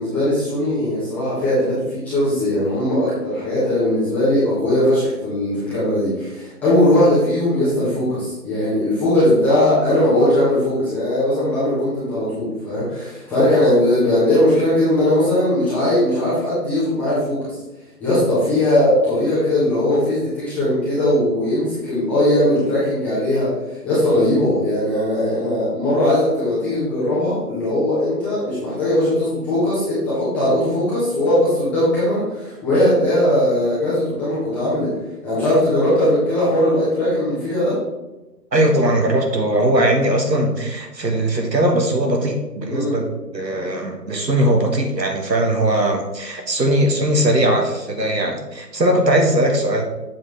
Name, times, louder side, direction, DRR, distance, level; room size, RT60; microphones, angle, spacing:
voice 1, 0.0-17.6 18.0-34.9 35.2-37.8 42.6-43.0, left 1 dB, 5° left, -13 dB, 1.1 m, -19 dB
voice 2, 38.5-43.1 43.3-49.8, right 1 dB, 90° right, 3 dB, 1.5 m, -19 dB
7.4 x 5.9 x 3.4 m, 1.0 s
figure-of-eight pair, 145°, 49 cm